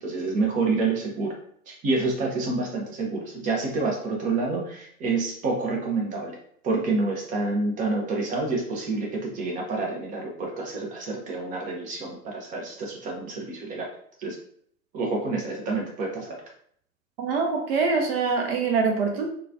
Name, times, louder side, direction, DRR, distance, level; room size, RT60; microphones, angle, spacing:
voice 1, 0.0-1.3 1.7-6.4 6.6-13.9 14.2-14.4 14.9-16.4, right 3 dB, 20° right, 0 dB, 0.7 m, -28 dB
voice 2, 17.2-19.3, right 4 dB, 45° right, 2 dB, 0.9 m, -24 dB
3.8 x 2.4 x 2.7 m, 0.63 s
figure-of-eight pair, 105°, 43 cm